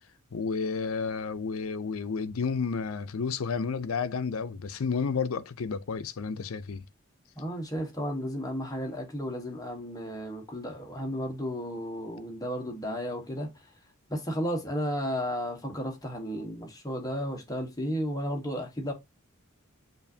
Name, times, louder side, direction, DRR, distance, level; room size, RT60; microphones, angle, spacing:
voice 1, 0.3-6.8, left 5 dB, 75° left, 0.5 m, -31 dB
voice 2, 7.4-13.5 14.1-18.9, equal, 15° left, 1.2 m, -33 dB
7.0 x 2.6 x 2.7 m
head